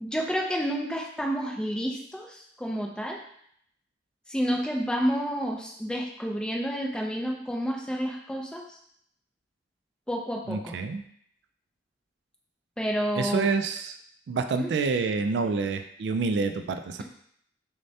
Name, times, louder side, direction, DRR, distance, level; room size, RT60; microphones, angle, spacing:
voice 1, 0.0-3.2 4.3-8.8 10.1-10.8 12.8-13.5 14.6-14.7, equal, 5° left, -1 dB, 0.4 m, -30 dB
voice 2, 10.5-11.0 13.2-13.9 14.3-17.0, right 4 dB, 70° right, 7 dB, 0.3 m, -27 dB
6.4 x 2.1 x 2.7 m, 0.68 s
head